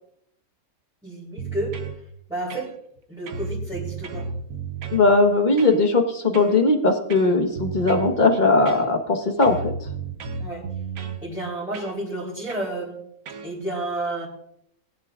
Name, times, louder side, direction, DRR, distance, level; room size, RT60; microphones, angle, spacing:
voice 1, 1.0-1.7 2.3-2.7 3.1-4.2 10.4-10.7 11.2-13.0 13.4-14.3, right 1 dB, 5° right, -7 dB, 3.3 m, -30 dB
sound 1, 1.4-2.0 2.5-3.0 3.3-5.0 5.6-5.8 6.3-6.6 7.1-8.2 8.7-9.1 9.4-11.2 11.7-12.0 12.5-12.7 13.3-13.5, right 5 dB, 80° right, 1.4 m, -33 dB
voice 2, 4.9-9.7, left 3 dB, 35° left, 5 dB, 1.4 m, -19 dB
20.0 x 10.5 x 2.5 m, 0.72 s
omnidirectional pair, 1.5 m